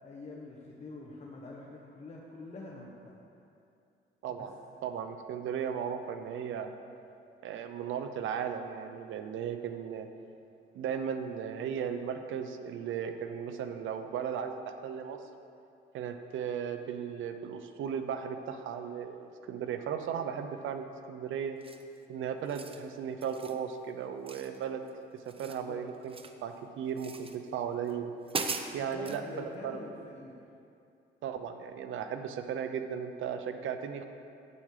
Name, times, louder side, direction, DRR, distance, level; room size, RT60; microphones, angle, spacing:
voice 1, 0.0-3.1 4.4-4.5 25.4-25.8 28.8-30.4, left 2 dB, 35° left, -3 dB, 1.4 m, -45 dB
voice 2, 4.8-6.7 7.4-10.1 10.7-15.2 15.9-21.6 22.1-24.8 25.4-26.1 26.4-28.1 28.7-29.8 31.2-34.0, right 7 dB, 80° right, 7 dB, 0.8 m, -36 dB
sound 1, 21.6-22.0 22.4-22.8 23.2-23.6 24.3-24.9 25.2-26.4 27.0-27.4 27.9-28.0 28.3-29.2, right 4 dB, 30° right, 0.8 m, -39 dB
11.0 x 8.7 x 5.0 m, 2.6 s
cardioid pair, 90°, 20 cm